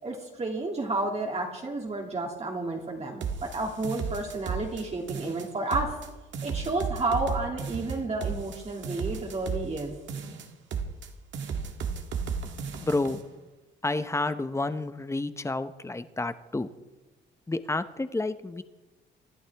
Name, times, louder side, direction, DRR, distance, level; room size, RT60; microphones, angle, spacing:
voice 1, 0.0-6.0 6.4-10.0, right 2 dB, 30° right, 0 dB, 2.5 m, -31 dB
sound 1, 3.2-4.8 5.1-6.1 6.3-9.8 10.1-11.1 11.3-13.2, right 6 dB, 70° right, 1.8 m, -34 dB
voice 2, 12.8-13.2 13.8-16.7 17.5-18.6, left 2 dB, 15° left, 12 dB, 0.9 m, -30 dB
26.0 x 11.5 x 3.5 m, 1.2 s
cardioid pair, 90°, 20 cm